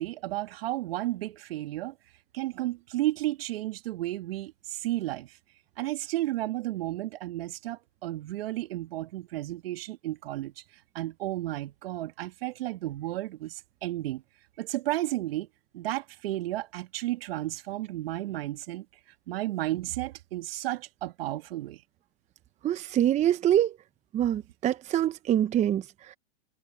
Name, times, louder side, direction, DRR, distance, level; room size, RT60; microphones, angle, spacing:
voice 1, 0.0-1.9 2.3-5.3 5.8-10.5 10.9-13.5 13.8-14.2 14.6-15.5 15.7-18.8 19.3-21.8, right 16 dB, 60° right, 2.5 m, -32 dB
voice 2, 22.6-23.8 24.1-26.2, right 11 dB, 20° right, 0.9 m, -25 dB
hypercardioid pair, 120°, 33 cm